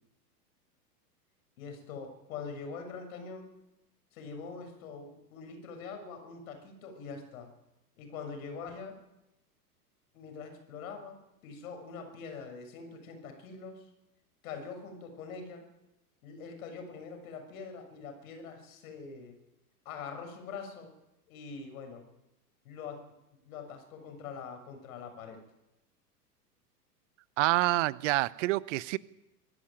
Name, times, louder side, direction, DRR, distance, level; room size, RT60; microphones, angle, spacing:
voice 1, 1.6-3.5 4.1-7.5 8.0-8.9 10.1-11.2 11.4-13.8 14.4-15.7 16.2-19.4 19.8-20.9 21.3-22.0 22.6-25.4, left 5 dB, 60° left, 6 dB, 6.7 m, -43 dB
voice 2, 27.4-29.0, right 19 dB, 50° right, 20 dB, 0.9 m, -27 dB
25.0 x 13.0 x 9.1 m, 0.94 s
figure-of-eight pair, 100°, 48 cm